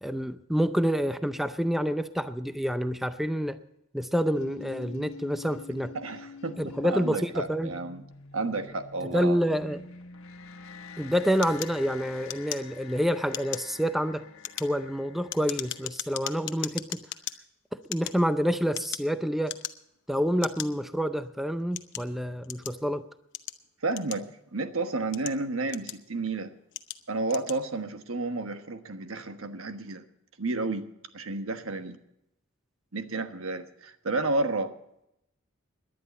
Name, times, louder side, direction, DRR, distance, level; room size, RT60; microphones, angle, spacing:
voice 1, 0.0-3.6 3.9-5.9 6.6-7.7 9.1-9.8 11.0-14.3 14.6-17.1 17.7-19.6 20.1-23.0, equal, ahead, 0.5 m, -28 dB
sound 1, 4.3-15.9, left 5 dB, 80° left, 1.4 m, -47 dB
voice 2, 5.9-8.0 8.3-9.4 23.8-26.5 27.1-30.0 30.4-30.8 31.1-32.0 32.9-34.7, right 3 dB, 85° right, 1.3 m, -31 dB
sound 2, 11.4-13.0 13.3-13.7 14.3-17.4 17.8-19.1 19.4-20.0 20.4-20.7 21.3-22.8 23.3-24.5 25.0-26.2 26.7-27.0 27.3-27.6, left 12 dB, 60° left, 0.8 m, -37 dB
18.0 x 11.0 x 4.2 m
head